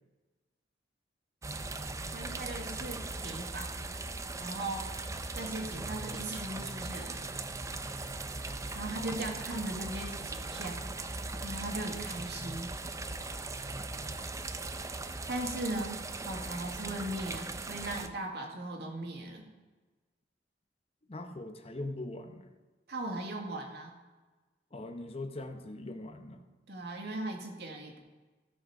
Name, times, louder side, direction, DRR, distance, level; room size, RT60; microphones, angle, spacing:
sound 1, 1.4-18.1, right 3 dB, 20° right, 0.5 m, -39 dB
voice 1, 2.1-3.7 4.4-4.9 5.3-7.2 8.7-10.8 11.4-12.7 15.3-19.5 22.9-24.0 26.7-28.0, right 1 dB, 65° right, 1 dB, 2.1 m, -38 dB
voice 2, 21.1-22.5 24.7-26.5, left 2 dB, 35° left, 7 dB, 0.8 m, -41 dB
16.0 x 6.4 x 4.8 m, 1.3 s
head